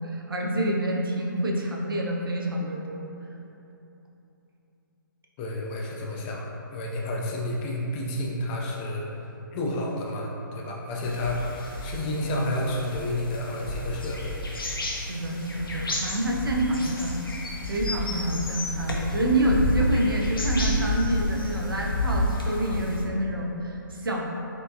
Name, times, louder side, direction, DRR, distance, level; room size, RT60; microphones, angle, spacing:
voice 1, 0.0-3.1 14.9-17.1 17.7-24.2, right 1 dB, 80° right, -1 dB, 0.6 m, -27 dB
voice 2, 5.4-9.0 9.5-11.5 11.8-14.4, left 1 dB, 25° left, -2 dB, 0.5 m, -30 dB
sound 1, 11.0-23.0, left 1 dB, 85° left, 0.7 m, -30 dB
4.3 x 2.9 x 2.7 m, 2.9 s
figure-of-eight pair, 135°, 11 cm